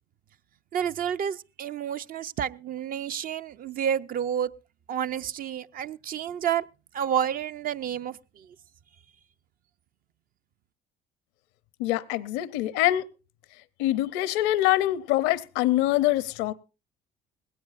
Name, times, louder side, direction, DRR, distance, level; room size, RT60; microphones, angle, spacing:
voice 1, 0.7-4.5 4.9-6.6 6.9-8.5, right 9 dB, 55° right, 0.6 m, -30 dB
voice 2, 11.8-13.1 13.8-16.5, left 15 dB, 90° left, 0.7 m, -24 dB
19.5 x 17.0 x 2.5 m
supercardioid pair, 85°, 18 cm